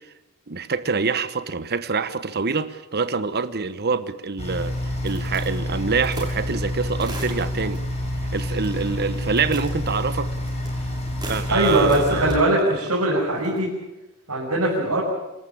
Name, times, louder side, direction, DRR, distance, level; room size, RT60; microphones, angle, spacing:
voice 1, 0.5-4.8 5.0-7.8 8.3-10.3 11.2-12.8, right 4 dB, 45° right, 13 dB, 1.1 m, -26 dB
sound 1, 4.4-12.3, left 1 dB, 30° left, 5.2 m, -28 dB
sound 2, 5.1-6.4 7.0-7.8 8.6-9.0 9.3-10.7 11.0-12.4 13.3-13.6, right 2 dB, 20° right, 6.2 m, -39 dB
voice 2, 11.5-13.7 14.3-15.0, right 1 dB, 90° right, -6 dB, 6.4 m, -21 dB
25.5 x 13.5 x 8.8 m, 1.0 s
head